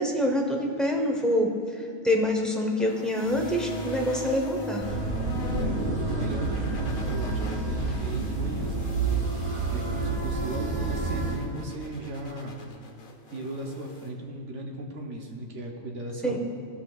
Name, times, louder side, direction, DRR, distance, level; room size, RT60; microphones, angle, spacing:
voice 1, 0.0-5.0 16.2-16.4, left 1 dB, ahead, 0 dB, 0.5 m, -26 dB
sound 1, 2.8-14.1, left 4 dB, 90° left, 1.5 m, -44 dB
sound 2, 3.2-11.4, right 1 dB, 40° left, 1.7 m, -36 dB
sound 3, 4.8-11.4, right 3 dB, 45° right, 1.0 m, -30 dB
voice 2, 5.5-12.6 13.3-16.4, right 1 dB, 65° right, 1 dB, 1.3 m, -36 dB
16.0 x 5.7 x 2.4 m, 2.5 s
omnidirectional pair, 1.4 m